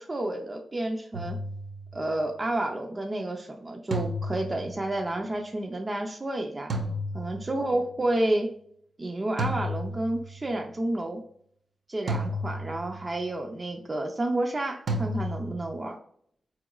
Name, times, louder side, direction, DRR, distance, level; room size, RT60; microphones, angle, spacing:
voice 1, 0.0-1.4 1.9-6.7 7.1-8.5 9.0-11.2 11.9-16.0, right 1 dB, 25° right, 2 dB, 0.4 m, -30 dB
sound 1, 1.1-2.1 3.9-5.0 6.7-7.8 9.4-10.5 12.1-13.2 14.9-15.7, equal, 65° right, 0.7 m, -33 dB
4.3 x 2.9 x 2.3 m, 0.64 s
wide cardioid pair, 115°, 0 cm